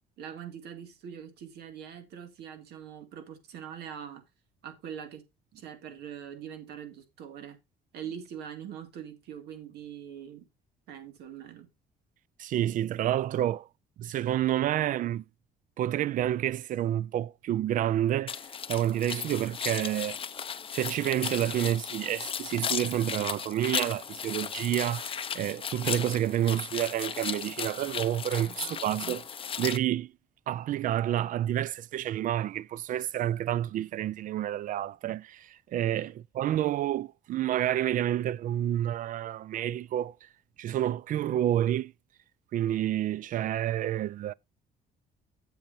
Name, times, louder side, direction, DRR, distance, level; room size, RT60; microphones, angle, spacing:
voice 1, 0.2-4.2 4.6-5.3 5.6-7.6 7.9-10.5 10.9-11.7 28.4-29.2 35.9-36.1, right 8 dB, 75° right, 2.2 m, -43 dB
voice 2, 12.4-13.7 14.0-15.2 15.8-18.4 18.7-20.2 20.7-29.2 29.6-30.1 30.5-40.2 40.6-41.9 42.5-44.3, right 12 dB, 50° right, 0.4 m, -29 dB
sound 1, 18.3-29.8, left 7 dB, 30° left, 0.6 m, -36 dB
10.5 x 7.6 x 2.7 m
cardioid pair, 110°, 17 cm